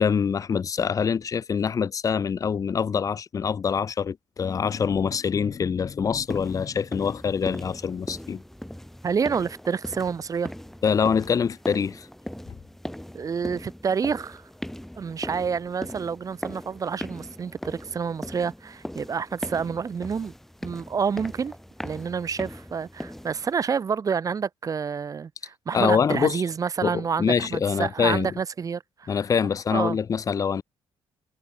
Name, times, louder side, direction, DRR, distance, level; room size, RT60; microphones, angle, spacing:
voice 1, 0.0-8.4 10.8-12.1 25.7-26.4 26.8-28.3 29.1-30.6, left 6 dB, 35° left, 0.6 m, -25 dB
sound 1, 6.3-23.5, equal, 5° left, 3.9 m, -39 dB
voice 2, 9.0-10.5 13.1-14.5 15.0-20.3 20.6-21.5 21.8-29.2 29.7-30.0, right 6 dB, 35° right, 0.7 m, -28 dB
cardioid pair, 115°, 11 cm